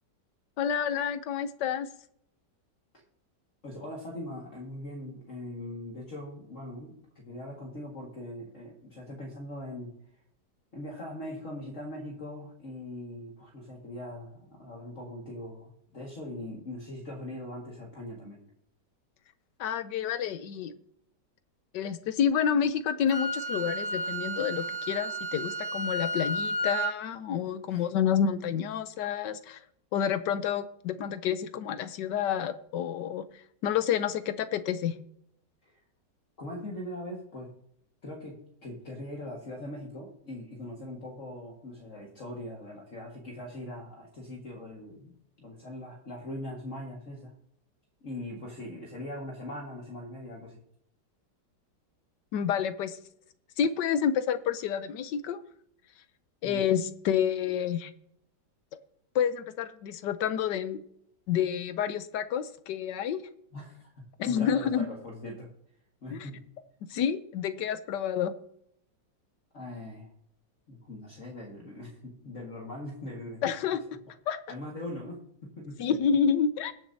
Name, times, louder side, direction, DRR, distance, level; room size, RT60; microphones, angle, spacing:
voice 1, 0.6-1.9 19.6-20.7 21.7-29.6 29.9-33.2 33.6-35.0 52.3-53.0 53.6-55.4 56.4-57.9 59.1-60.8 61.3-63.2 64.2-64.9 66.1-66.3 66.9-68.3 73.4-73.9 74.3-74.4 75.8-76.7, left 8 dB, 75° left, 12 dB, 1.3 m, -29 dB
voice 2, 3.6-9.9 10.7-18.4 27.7-27.9 35.6-35.8 36.4-37.5 38.0-47.3 48.0-50.6 56.4-56.7 63.5-65.5 66.0-66.4 69.5-70.1 70.7-73.4 73.9-74.0 74.5-75.9, left 1 dB, 45° left, -2 dB, 2.1 m, -41 dB
Wind instrument woodwind instrument, 23.1-27.0, right 1 dB, 75° right, 2.2 m, -32 dB
21.0 x 7.3 x 2.7 m, 0.71 s
omnidirectional pair, 2.0 m